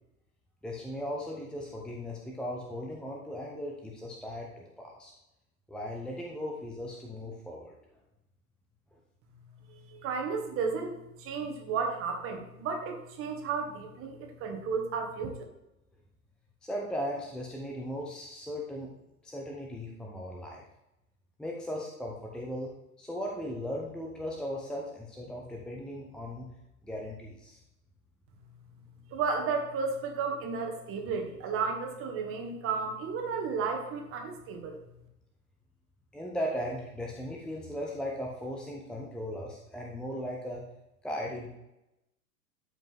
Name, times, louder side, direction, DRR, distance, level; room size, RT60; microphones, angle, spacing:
voice 1, 0.6-5.1 5.7-7.7 16.6-18.9 19.2-20.6 21.4-22.7 23.0-26.5 26.8-27.6 36.1-40.6 41.0-41.5, equal, ahead, -1 dB, 0.8 m, -37 dB
voice 2, 9.7-15.4 29.1-34.8, right 5 dB, 30° right, 3 dB, 1.6 m, -33 dB
12.0 x 5.1 x 3.6 m, 0.89 s
figure-of-eight pair, 95°, 45 cm